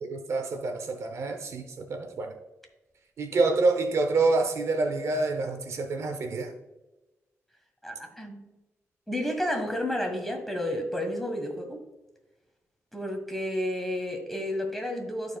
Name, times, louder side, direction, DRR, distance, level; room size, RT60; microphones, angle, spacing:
voice 1, 0.0-2.4 3.2-6.5, right 3 dB, 65° right, 6 dB, 0.8 m, -27 dB
voice 2, 7.8-8.6 9.1-11.8 12.9-15.4, left 1 dB, 5° left, 3 dB, 1.7 m, -31 dB
13.5 x 4.7 x 2.4 m, 1.0 s
cardioid pair, 95°, 5 cm